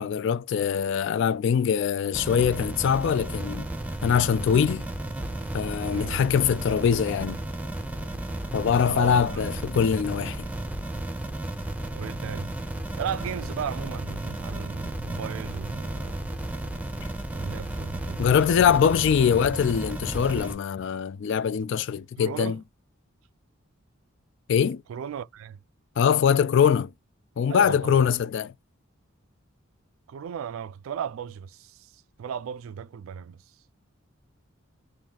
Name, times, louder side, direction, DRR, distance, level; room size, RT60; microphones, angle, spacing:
voice 1, 0.0-3.7 4.0-4.9 5.5-7.4 8.5-10.5 18.2-22.6 24.5-24.8 26.0-26.9 27.4-28.5, left 7 dB, 60° left, 0.3 m, -23 dB
sound 1, 2.1-20.6, right 1 dB, 5° right, 0.5 m, -33 dB
voice 2, 5.9-6.2 8.9-9.6 11.9-12.5 13.0-16.2 17.3-18.2 22.2-22.6 24.9-25.6 27.5-28.1 30.1-31.9 32.2-33.4, right 8 dB, 75° right, 0.3 m, -36 dB
3.6 x 2.6 x 3.9 m
head